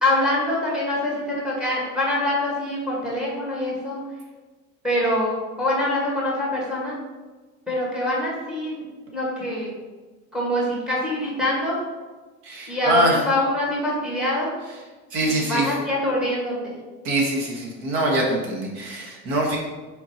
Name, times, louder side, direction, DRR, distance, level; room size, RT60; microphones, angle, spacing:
voice 1, 0.0-4.0 4.8-7.0 7.7-8.8 9.1-9.7 10.3-11.8 12.7-14.5 15.2-16.7, left 1 dB, ahead, -4 dB, 1.9 m, -24 dB
voice 2, 12.4-13.2 15.1-15.7 17.0-19.6, right 1 dB, 85° right, -1 dB, 1.7 m, -23 dB
5.7 x 4.4 x 4.4 m, 1.3 s
cardioid pair, 150°, 32 cm